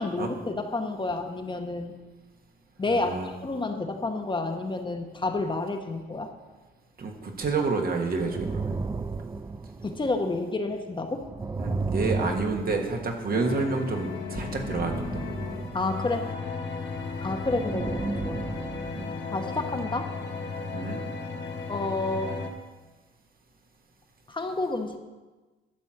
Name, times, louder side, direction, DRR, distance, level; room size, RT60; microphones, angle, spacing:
voice 1, 0.0-1.9 2.8-3.2 3.4-6.3 9.8-11.2 12.2-12.4 15.7-16.2 17.2-18.4 19.3-20.1 21.7-22.3 24.3-25.0, left 2 dB, 25° left, 5 dB, 1.0 m, -30 dB
voice 2, 2.9-3.3 7.0-8.7 11.6-15.2 18.9-19.1 20.7-21.0, right 4 dB, 50° right, 2 dB, 1.6 m, -29 dB
sound 1, 8.2-10.4 11.1-13.7 14.3-16.5 17.0-19.1, right 3 dB, 15° right, 0.3 m, -34 dB
sound 2, 13.3-22.5, left 4 dB, 65° left, 1.2 m, -35 dB
12.0 x 4.3 x 7.6 m, 1.2 s
cardioid pair, 90°, 20 cm